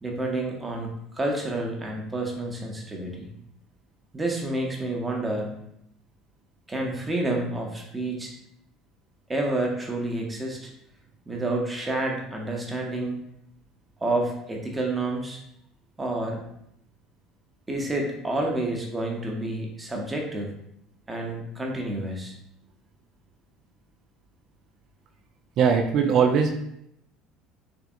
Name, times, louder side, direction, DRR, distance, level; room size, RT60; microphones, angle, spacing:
voice 1, 0.0-3.3 4.1-5.6 6.7-8.3 9.3-10.7 11.3-13.2 14.0-15.4 16.0-16.4 17.7-20.6 21.1-22.3, right 2 dB, 15° right, 0 dB, 0.8 m, -29 dB
voice 2, 25.6-26.6, right 6 dB, 50° right, 4 dB, 0.3 m, -20 dB
3.6 x 3.3 x 2.4 m, 0.76 s
figure-of-eight pair, 65°, 0 cm